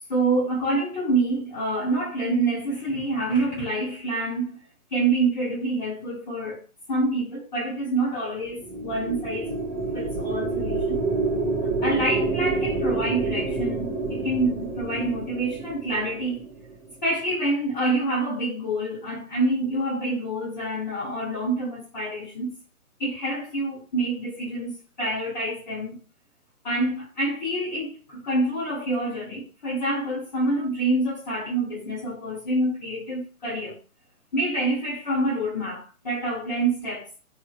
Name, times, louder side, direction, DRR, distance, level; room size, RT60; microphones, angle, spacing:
voice 1, 0.1-4.6 4.9-6.6 6.9-9.5 9.9-11.0 11.8-16.5 17.0-22.5 23.0-26.0 26.6-33.8 34.3-37.1, right 2 dB, 30° left, 0.8 m, -27 dB
sound 1, 8.4-17.0, right 3 dB, 10° right, 0.5 m, -28 dB
2.8 x 2.7 x 2.3 m
hypercardioid pair, 160°, 44 cm